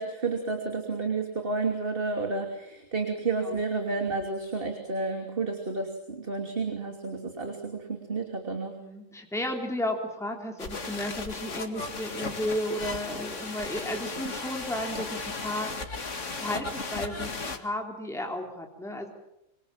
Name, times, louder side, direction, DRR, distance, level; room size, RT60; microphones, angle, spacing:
voice 1, 0.0-8.7, right 3 dB, 40° right, 4 dB, 3.1 m, -31 dB
voice 2, 8.8-15.9 16.4-19.1, left 1 dB, ahead, 2 dB, 3.4 m, -33 dB
sound 1, 10.6-17.6, left 3 dB, 60° left, 2.5 m, -36 dB
25.5 x 25.5 x 7.5 m, 0.85 s
omnidirectional pair, 1.5 m